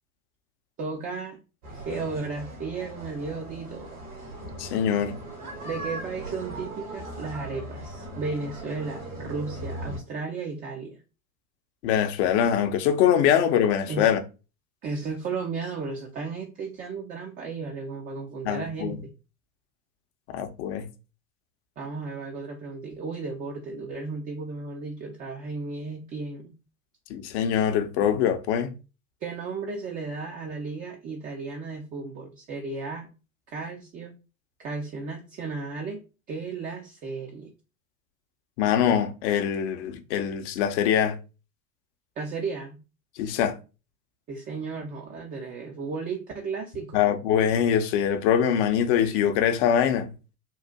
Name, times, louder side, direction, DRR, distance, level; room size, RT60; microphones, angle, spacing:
voice 1, 0.8-1.4 1.7-4.0 5.6-11.0 13.9-14.1 14.8-19.0 21.8-26.5 29.2-33.1 33.5-34.1 34.6-36.0 36.3-37.5 42.2-42.8 44.3-47.0, right 4 dB, 20° right, 0.4 m, -34 dB
sound 1, 1.6-10.0, right 1 dB, 80° right, 1.7 m, -39 dB
voice 2, 4.6-5.2 11.8-14.2 18.4-19.0 20.3-20.9 27.1-28.7 38.6-41.2 43.2-43.6 46.9-50.1, left 9 dB, 50° left, 0.6 m, -23 dB
3.8 x 2.4 x 2.2 m
figure-of-eight pair, 85°, 44 cm